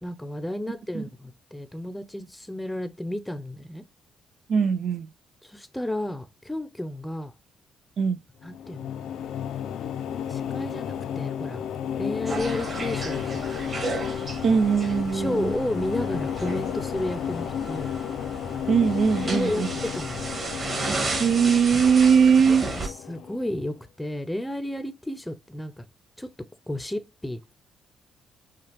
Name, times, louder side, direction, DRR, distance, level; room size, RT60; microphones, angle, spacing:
voice 1, 0.0-3.8 5.4-7.3 8.4-8.8 10.3-11.6 12.0-13.6 15.1-17.9 19.2-20.2 22.5-25.9 26.2-26.3 26.7-27.5, left 1 dB, 5° left, 0.6 m, -32 dB
voice 2, 4.5-5.1 8.0-8.2 14.4-15.5 18.7-19.7 21.2-22.7, right 6 dB, 60° right, 0.4 m, -20 dB
sound 1, 8.4-23.7, left 9 dB, 75° left, 0.4 m, -32 dB
sound 2, 12.3-22.9, right 3 dB, 35° right, 1.5 m, -34 dB
5.7 x 2.3 x 3.3 m
cardioid pair, 90°, 0 cm